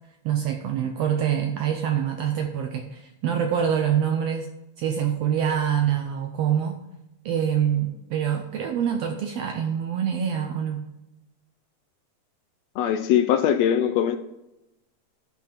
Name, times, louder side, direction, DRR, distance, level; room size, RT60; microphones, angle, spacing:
voice 1, 0.2-4.5 4.8-6.8 7.2-10.9, right 9 dB, 75° right, 5 dB, 1.5 m, -25 dB
voice 2, 12.8-14.2, left 9 dB, 80° left, 9 dB, 1.5 m, -21 dB
11.5 x 6.0 x 4.3 m, 0.92 s
omnidirectional pair, 3.5 m